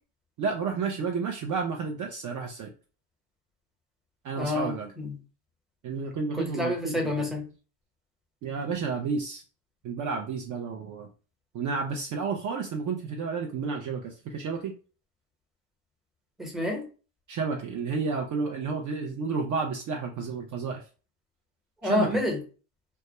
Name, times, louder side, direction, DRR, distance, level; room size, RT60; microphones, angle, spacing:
voice 1, 0.4-2.7 4.2-4.9 5.8-7.1 8.4-9.4 9.8-11.1 11.5-14.7 17.3-20.8 21.8-22.1, right 5 dB, 40° right, 2 dB, 0.5 m, -31 dB
voice 2, 4.4-5.2 6.3-7.5 16.4-16.9 21.8-22.4, left 2 dB, ahead, -1 dB, 0.9 m, -28 dB
2.2 x 2.1 x 2.9 m, 0.35 s
supercardioid pair, 90°, 46 cm